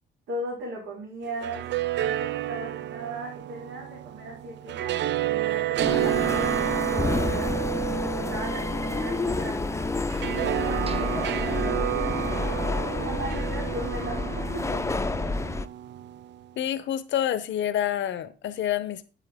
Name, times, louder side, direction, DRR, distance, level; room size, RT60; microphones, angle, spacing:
voice 1, 0.3-1.7 2.0-9.9 10.4-12.6 13.0-14.8, right 1 dB, 85° right, 3.9 m, -38 dB
sound 1, 1.3-16.4, right 13 dB, 65° right, 0.4 m, -30 dB
sound 2, 5.8-15.7, left 3 dB, 15° left, 0.5 m, -29 dB
sound 3, 10.9-12.8 13.1-13.2 13.7-13.9, right 3 dB, 30° right, 1.1 m, -45 dB
voice 2, 16.6-19.1, left 11 dB, 70° left, 0.8 m, -28 dB
8.7 x 8.3 x 3.6 m
cardioid pair, 90°, 20 cm